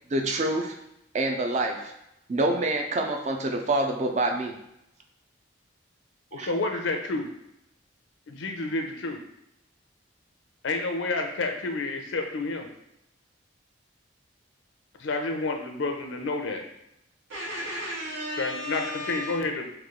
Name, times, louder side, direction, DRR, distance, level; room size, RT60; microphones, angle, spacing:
voice 1, 0.1-0.8 1.1-1.9 2.3-4.6 6.3-6.6, right 2 dB, 35° right, 3 dB, 0.4 m, -26 dB
voice 2, 6.3-7.3 8.3-9.2 10.6-12.7 15.0-16.6 18.4-19.7, left 3 dB, 75° left, 4 dB, 0.5 m, -29 dB
voice 3, 17.3-19.4, equal, 85° right, -6 dB, 1.3 m, -34 dB
3.1 x 2.3 x 3.6 m, 0.81 s
head